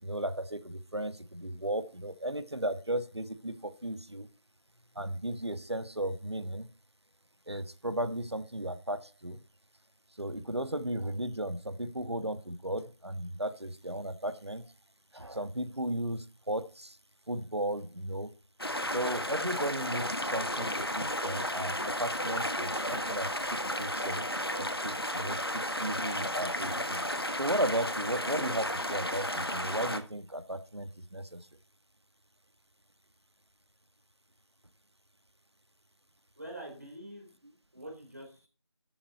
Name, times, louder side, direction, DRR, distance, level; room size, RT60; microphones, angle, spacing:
voice 1, 0.0-4.3 4.9-6.7 7.5-9.4 10.2-14.7 15.1-17.0 17.3-18.3 18.9-24.3 24.6-27.1 27.4-31.5, right 1 dB, 60° right, 12 dB, 1.4 m, -35 dB
sound 1, 18.6-30.0, left 1 dB, 55° left, 1.4 m, -33 dB
voice 2, 36.4-37.3 37.7-38.5, right 1 dB, 35° right, -1 dB, 3.9 m, -45 dB
12.0 x 7.7 x 4.2 m, 0.36 s
figure-of-eight pair, 175°, 16 cm